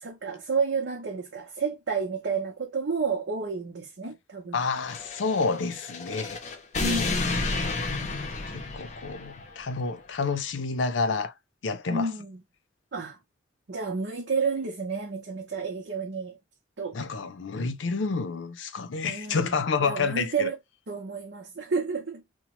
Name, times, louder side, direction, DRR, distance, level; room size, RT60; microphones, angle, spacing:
voice 1, 0.0-4.6 6.8-7.6 11.9-12.4 12.9-13.2 13.7-16.4 16.8-17.0 19.0-20.6 20.9-22.4, right 4 dB, 70° right, 0.7 m, -31 dB
voice 2, 4.5-6.4 8.3-11.3 11.6-12.1 16.9-20.5, left 4 dB, 85° left, 0.5 m, -29 dB
sound 1, 4.8-9.5, left 3 dB, 40° left, 0.5 m, -31 dB
2.9 x 2.2 x 2.9 m
head